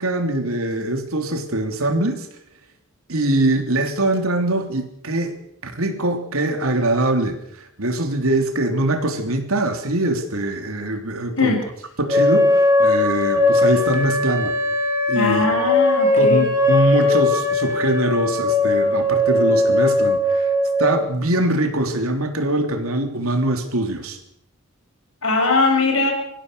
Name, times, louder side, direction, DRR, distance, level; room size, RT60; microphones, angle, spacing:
voice 1, 0.0-2.3 3.1-5.4 5.6-11.6 12.0-14.6 15.1-15.6 16.2-20.5 20.8-24.2, right 1 dB, 90° right, 5 dB, 3.4 m, -22 dB
sound 1, 12.1-21.0, left 2 dB, 15° right, 3.8 m, -19 dB
voice 2, 15.1-16.4 25.2-26.1, left 3 dB, 70° left, 1 dB, 6.5 m, -20 dB
25.0 x 15.5 x 6.9 m, 0.73 s
head